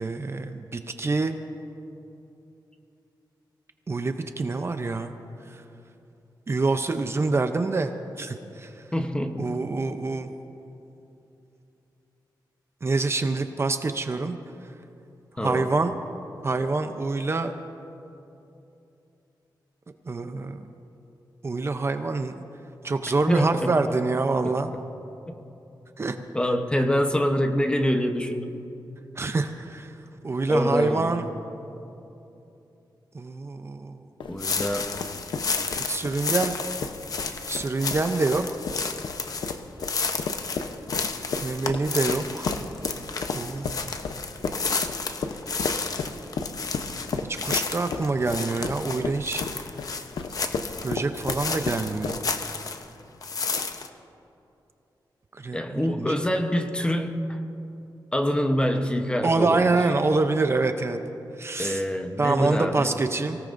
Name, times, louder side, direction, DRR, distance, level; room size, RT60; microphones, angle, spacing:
voice 1, 0.0-1.4 3.9-5.1 5.5-5.6 6.5-7.9 8.2-8.7 9.4-10.3 12.8-14.4 15.4-16.0 16.4-17.5 20.1-20.6 21.4-22.3 22.8-24.7 26.0-26.2 29.2-30.0 30.2-31.2 33.1-34.0 35.9-36.6 37.5-38.4 41.4-42.5 43.3-43.9 47.3-49.4 50.8-52.2 55.3-56.2 59.2-61.0 61.4-61.8 62.2-63.4, right 3 dB, 35° right, 7 dB, 0.6 m, -26 dB
voice 2, 8.9-9.5 15.4-15.7 23.3-23.7 24.4-24.5 26.3-28.6 30.5-31.3 34.3-34.9 55.5-57.4 58.1-59.8 61.6-62.9, equal, 10° left, 6 dB, 0.9 m, -25 dB
sound 1, 34.2-52.5, left 4 dB, 85° left, 0.7 m, -34 dB
sound 2, 34.4-52.9 53.2-53.9, left 4 dB, 50° left, 0.8 m, -31 dB
24.5 x 17.5 x 2.6 m, 2.8 s
wide cardioid pair, 120°, 8 cm